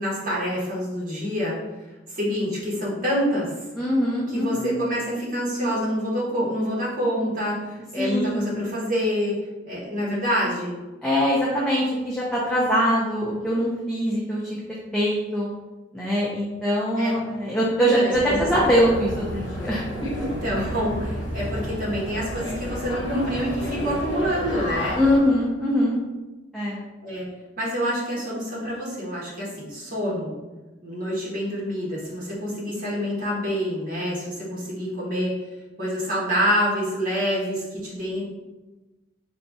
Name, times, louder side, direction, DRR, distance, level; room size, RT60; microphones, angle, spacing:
voice 1, 0.0-1.6 2.1-3.5 4.3-10.8 17.0-17.1 17.8-18.5 20.2-25.0 27.0-27.3 27.6-30.4 30.8-35.4 35.8-38.2, equal, 45° right, -6 dB, 1.4 m, -27 dB
voice 2, 3.8-4.7 8.0-8.5 11.0-14.6 14.9-15.5 15.9-20.3 24.9-26.0 26.5-26.8, equal, 5° left, -7 dB, 0.6 m, -23 dB
sound 1, 18.1-25.2, equal, 75° left, 1.1 m, -31 dB
4.4 x 2.4 x 4.0 m, 1.2 s
head